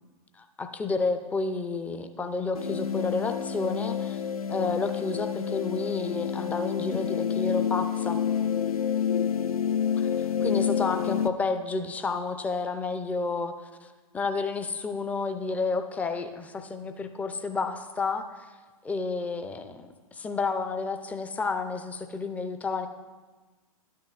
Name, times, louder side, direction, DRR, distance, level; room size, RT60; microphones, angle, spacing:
voice 1, 0.4-4.2 4.5-8.2 10.0-13.5 13.8-13.9 14.1-18.2 18.8-22.9, left 4 dB, 10° left, 8 dB, 0.4 m, -30 dB
sound 1, 2.5-11.3, left 8 dB, 80° left, 0.5 m, -28 dB
12.0 x 9.2 x 2.3 m, 1.3 s
figure-of-eight pair, 105°, 18 cm